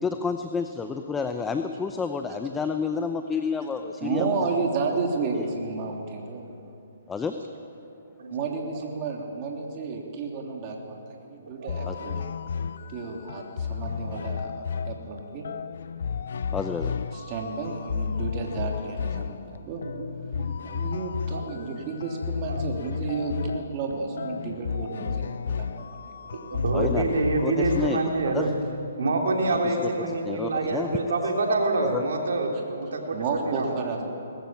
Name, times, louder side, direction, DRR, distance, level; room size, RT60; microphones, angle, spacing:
voice 1, 0.0-4.3 5.4-5.5 7.1-7.3 11.8-12.0 16.5-16.9 26.7-27.0 27.4-28.0 28.2-28.5 29.6-31.0 31.9-32.0, left 5 dB, 10° left, 6 dB, 0.7 m, -30 dB
voice 2, 4.0-6.5 8.3-12.3 12.9-15.5 17.1-19.8 20.6-26.6 33.1-34.0, right 4 dB, 35° right, 1 dB, 3.0 m, -32 dB
sound 1, 11.7-28.9, left 6 dB, 65° left, 0.5 m, -33 dB
voice 3, 26.5-28.5 29.0-33.2 33.5-33.7, right 2 dB, 70° right, 2 dB, 3.3 m, -26 dB
20.5 x 14.5 x 8.8 m, 2.7 s
hypercardioid pair, 145°, 0 cm